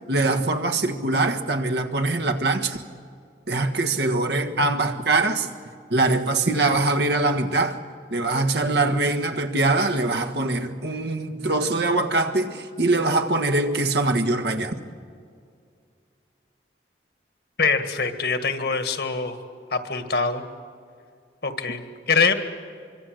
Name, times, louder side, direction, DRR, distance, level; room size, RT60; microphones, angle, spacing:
voice 1, 0.1-2.8 3.5-5.5 5.9-7.8 8.1-14.8, right 2 dB, 70° right, 5 dB, 1.5 m, -23 dB
voice 2, 17.6-19.4 19.7-20.4 21.4-22.3, left 5 dB, 65° left, 7 dB, 1.8 m, -24 dB
24.5 x 24.5 x 7.8 m, 2.3 s
head